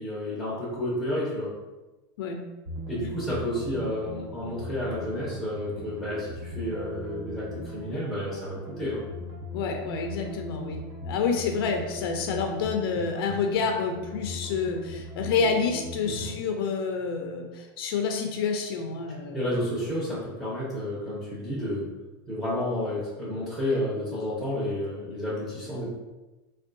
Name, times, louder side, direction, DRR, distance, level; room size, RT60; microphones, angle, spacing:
voice 1, 0.0-1.5 2.9-9.0 16.1-16.3 19.3-21.8 22.3-25.8, left 1 dB, ahead, -10 dB, 0.6 m, -31 dB
sound 1, 2.7-16.4, equal, 70° right, 1.1 m, -39 dB
voice 2, 9.5-19.4, left 5 dB, 75° left, 4 dB, 0.4 m, -28 dB
3.5 x 2.2 x 2.5 m, 1.1 s
supercardioid pair, 155°, 12 cm